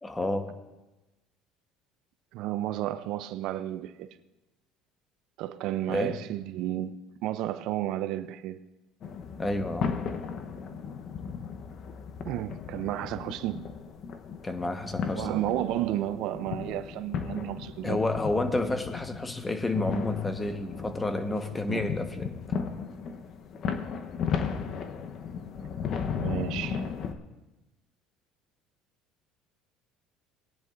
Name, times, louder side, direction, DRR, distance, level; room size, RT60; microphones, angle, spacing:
voice 1, 0.0-0.5 5.9-6.2 9.4-10.0 14.4-15.3 17.8-22.4, left 2 dB, 15° left, 1.1 m, -30 dB
voice 2, 2.3-4.1 5.4-8.7 12.3-13.7 15.1-18.0 21.7-21.9 25.6-25.7 26.1-26.8, right 13 dB, 70° right, 0.4 m, -32 dB
sound 1, 9.0-27.1, left 6 dB, 50° left, 0.9 m, -35 dB
19.0 x 10.5 x 2.5 m
supercardioid pair, 95°, 0 cm